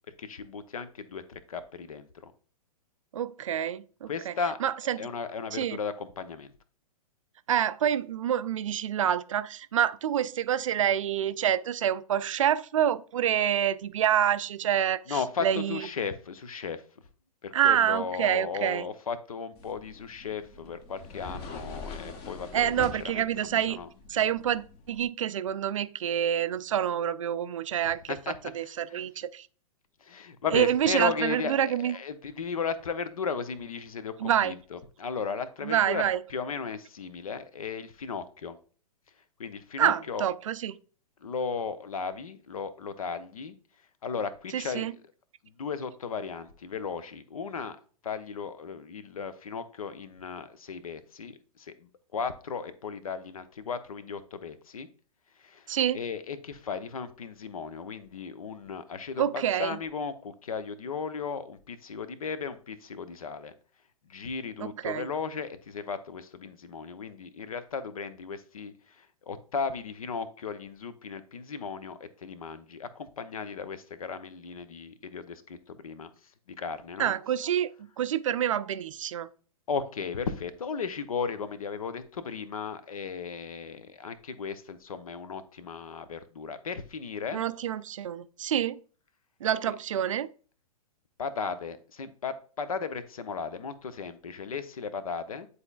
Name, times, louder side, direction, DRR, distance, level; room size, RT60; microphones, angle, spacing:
voice 1, 0.2-2.3 4.1-4.6 5.0-6.5 15.1-16.8 17.4-22.7 23.0-23.9 28.1-28.4 28.6-29.0 30.0-36.0 36.3-38.6 39.4-40.3 41.2-43.6 44.0-44.9 45.6-47.8 48.0-54.9 55.4-55.7 55.9-63.5 64.1-76.1 76.6-77.1 79.7-87.4 89.6-89.8 91.2-95.5, left 5 dB, 65° left, 0.8 m, -36 dB
voice 2, 3.1-4.3 4.6-5.1 5.5-5.8 7.5-15.8 17.5-18.9 22.5-23.8 24.1-28.1 28.5-29.5 30.5-31.9 34.2-34.5 35.6-36.2 39.8-40.8 44.5-44.9 55.7-56.0 59.2-59.8 64.6-65.1 77.0-77.7 78.0-79.3 87.3-88.8 89.4-90.3, right 10 dB, 55° right, 0.4 m, -27 dB
sound 1, 19.6-25.1, left 4 dB, 30° left, 1.0 m, -44 dB
9.6 x 4.2 x 2.4 m
figure-of-eight pair, 105°, 20 cm